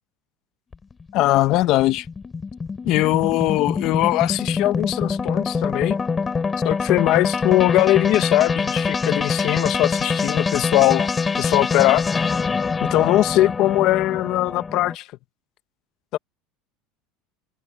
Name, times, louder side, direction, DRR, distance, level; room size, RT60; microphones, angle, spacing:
sound 1, 0.7-15.0, left 5 dB, 15° left, 3.9 m, -25 dB
voice 1, 1.1-2.1 2.8-6.0 6.6-11.1 11.4-12.0 12.8-15.1 16.1-16.2, left 16 dB, 50° left, 0.8 m, -20 dB
supercardioid pair, 140°, 0 cm